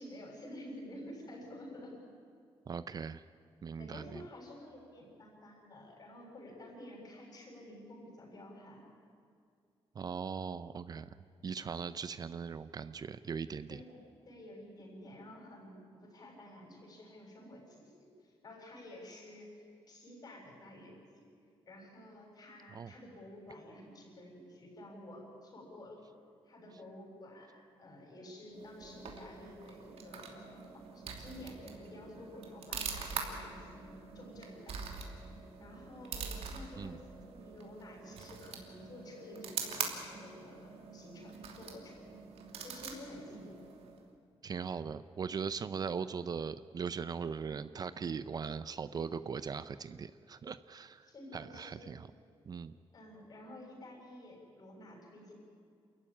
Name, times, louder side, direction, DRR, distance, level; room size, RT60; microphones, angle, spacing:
voice 1, 0.0-1.9 3.8-8.8 11.6-11.8 13.7-14.0 14.3-17.9 18.2-19.5 19.9-21.2 21.7-26.0 26.5-34.8 35.6-42.1 42.6-43.6 51.0-52.0 52.9-55.3, left 1 dB, 40° left, 0 dB, 7.1 m, -51 dB
voice 2, 2.7-3.2 3.6-4.2 10.0-11.1 11.4-13.8 22.7-22.9 36.8-37.0 44.4-51.1 51.3-52.1 52.5-52.7, right 6 dB, 40° right, 13 dB, 0.5 m, -39 dB
sound 1, 28.5-44.1, right 6 dB, 85° right, 2.8 m, -44 dB
28.0 x 14.5 x 10.0 m, 2.3 s
wide cardioid pair, 150°, 10 cm